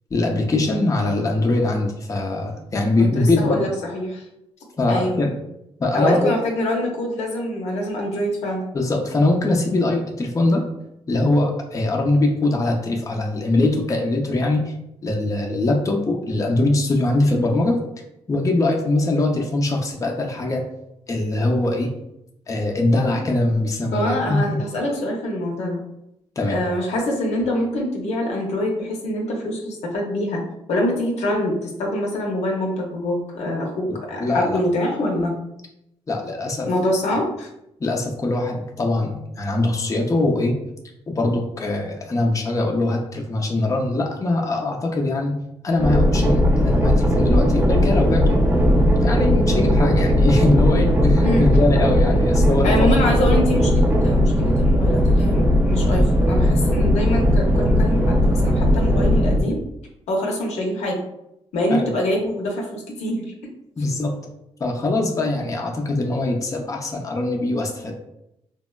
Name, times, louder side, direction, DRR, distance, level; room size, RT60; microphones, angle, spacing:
voice 1, 0.1-3.6 4.8-5.3 5.8-6.3 8.7-10.6 11.1-14.6 15.0-17.8 18.3-20.7 21.1-21.9 22.5-24.4 26.4-26.6 34.2-34.6 36.1-36.7 37.8-40.5 41.1-45.3 45.6-48.4 49.0-52.9 61.7-61.9 63.8-64.2 64.6-67.9, left 2 dB, 30° left, 0 dB, 0.5 m, -22 dB
voice 2, 3.0-4.2 4.9-5.2 5.9-8.6 23.9-25.9 26.5-30.4 30.7-35.3 36.7-37.5 51.2-51.5 52.6-59.6 60.1-61.0 61.5-63.2, left 1 dB, 80° left, 0 dB, 0.6 m, -24 dB
sound 1, 45.8-59.4, equal, 15° right, 0.5 m, -17 dB
3.4 x 2.0 x 2.2 m, 0.82 s
cardioid pair, 70°, 11 cm